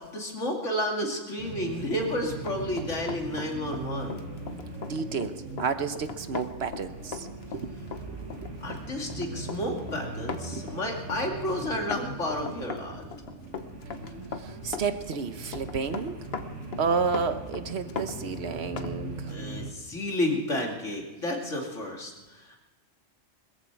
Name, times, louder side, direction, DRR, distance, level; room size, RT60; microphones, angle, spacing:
voice 1, 0.1-4.2 8.6-13.0 19.3-22.6, left 1 dB, 80° left, 1 dB, 2.8 m, -31 dB
sound 1, 1.4-19.7, right 3 dB, 80° right, 2.2 m, -40 dB
Run, 1.9-19.0 19.3-19.4, left 5 dB, 55° left, 1.3 m, -39 dB
voice 2, 4.8-7.3 7.5-7.7 8.1-8.2 10.5-10.6 14.4-16.2 16.8-19.3, right 5 dB, 60° right, 10 dB, 1.2 m, -31 dB
21.0 x 14.5 x 4.6 m, 1.2 s
omnidirectional pair, 1.2 m